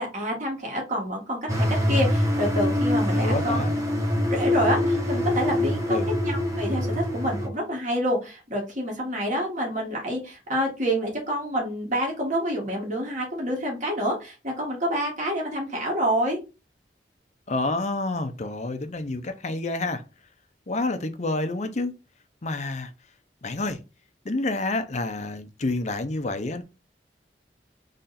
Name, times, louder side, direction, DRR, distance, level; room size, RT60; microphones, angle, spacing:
voice 1, 0.0-3.6 4.3-16.4, equal, 45° right, 1.9 m, -28 dB
sound 1, 1.5-7.5, left 1 dB, 20° right, 1.2 m, -24 dB
voice 2, 3.1-3.7 5.9-6.1 17.5-20.0 20.7-21.9 22.4-22.9 23.4-23.8 24.2-26.6, left 2 dB, 40° left, 0.7 m, -28 dB
3.9 x 3.2 x 4.2 m
head